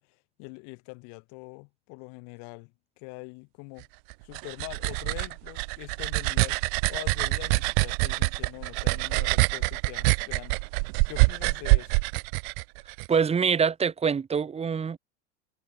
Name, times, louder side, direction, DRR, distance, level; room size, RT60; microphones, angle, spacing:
voice 1, 0.0-3.9 4.2-6.6 6.9-12.0, left 37 dB, 60° left, 7.6 m, -44 dB
sound 1, 4.1-13.1, right 32 dB, 60° right, 1.8 m, -25 dB
voice 2, 13.1-15.0, right 6 dB, 20° right, 1.1 m, -25 dB
hypercardioid pair, 85°, 34 cm